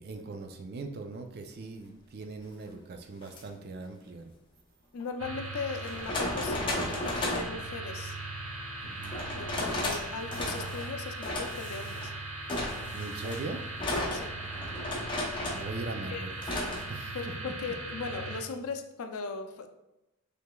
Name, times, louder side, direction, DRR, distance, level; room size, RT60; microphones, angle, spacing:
voice 1, 0.0-4.3 8.8-9.2 12.9-13.6 15.5-16.3 16.9-17.2, right 3 dB, 45° right, 6 dB, 0.4 m, -40 dB
sound 1, 3.2-3.4 5.0-5.1 5.8-7.6 9.0-10.0 10.3-10.9 11.2-12.1 12.5-15.7 16.4-16.8, left 1 dB, 20° left, 0.6 m, -34 dB
voice 2, 4.9-8.2 9.3-12.1 14.1-14.4 16.1-16.2 17.1-19.7, left 4 dB, 70° left, 7 dB, 0.4 m, -38 dB
sound 2, 5.2-18.4, right 2 dB, 70° right, 0.9 m, -39 dB
4.7 x 3.3 x 2.2 m, 0.95 s
head